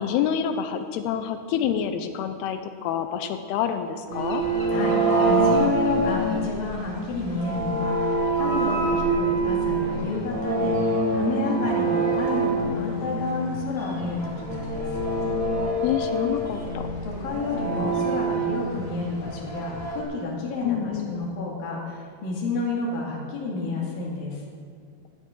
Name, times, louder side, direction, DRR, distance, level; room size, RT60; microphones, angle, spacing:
voice 1, 0.0-4.4 15.8-16.9 20.6-21.2, left 9 dB, 80° left, 8 dB, 2.6 m, -27 dB
sound 1, 4.1-20.0, right 2 dB, 35° right, 0.5 m, -26 dB
voice 2, 4.7-10.8 11.1-14.9 17.1-24.4, left 3 dB, 60° left, -3 dB, 3.8 m, -30 dB
16.5 x 12.0 x 3.8 m, 2.1 s
omnidirectional pair, 4.7 m